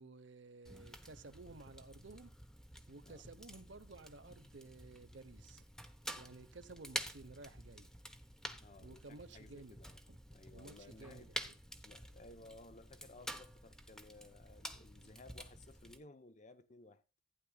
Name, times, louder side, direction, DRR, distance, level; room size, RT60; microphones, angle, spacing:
voice 1, 0.0-2.3 2.9-5.6 6.1-7.9 8.8-9.8 10.1-10.2 10.5-11.5 15.0-15.1, right 3 dB, 65° right, 1.0 m, -54 dB
Fire, 0.6-16.0, equal, 5° left, 0.8 m, -50 dB
voice 2, 8.6-10.0 10.3-11.3 11.8-17.0, left 2 dB, 35° left, 0.8 m, -58 dB
15.0 x 9.7 x 2.3 m
head